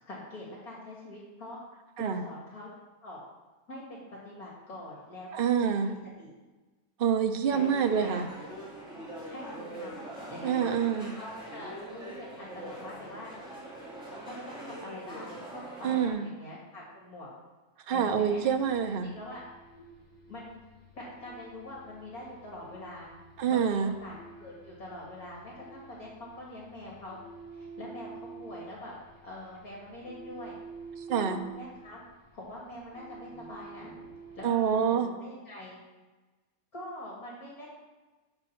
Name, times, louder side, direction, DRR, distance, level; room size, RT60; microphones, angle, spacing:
voice 1, 0.1-1.6 2.0-2.7 3.0-3.2 3.7-6.3 7.5-7.7 8.0-8.2 9.3-10.7 11.2-13.3 14.3-17.3 17.9-18.5 19.0-19.4 20.3-20.7 20.9-23.1 23.5-27.2 27.5-28.9 29.2-30.6 31.2-32.0 32.3-33.9 34.4-35.8 36.7-37.7, left 1 dB, 55° left, -4 dB, 2.8 m, -44 dB
voice 2, 5.3-5.9 7.0-8.2 10.4-11.1 15.8-16.3 17.9-19.1 23.4-23.9 31.1-31.4 34.4-35.1, right 7 dB, 50° right, 6 dB, 0.7 m, -26 dB
sound 1, 7.5-16.1, right 1 dB, 5° right, 3.0 m, -42 dB
sound 2, 18.3-34.8, right 4 dB, 15° left, 0.9 m, -49 dB
8.0 x 7.0 x 5.8 m, 1.2 s
omnidirectional pair, 1.8 m